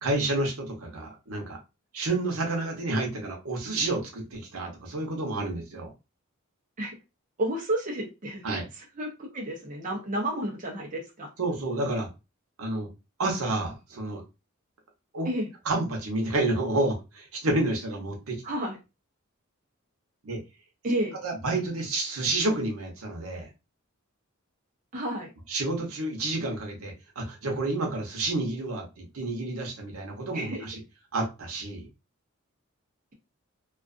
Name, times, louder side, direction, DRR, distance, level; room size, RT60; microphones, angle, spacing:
voice 1, 0.0-1.6 1.9-5.9 8.4-8.6 11.4-12.1 12.6-12.9 13.2-14.2 15.1-15.3 15.6-18.4 20.2-20.4 21.2-23.5 25.5-30.8 31.1-31.9, right 2 dB, 90° right, 1 dB, 0.8 m, -29 dB
voice 2, 7.4-8.4 9.0-11.3 15.3-15.5 18.4-18.8 20.8-21.2 24.9-25.3 30.3-30.6, right 1 dB, 40° right, -1 dB, 0.6 m, -31 dB
2.4 x 2.4 x 2.4 m, 0.26 s
head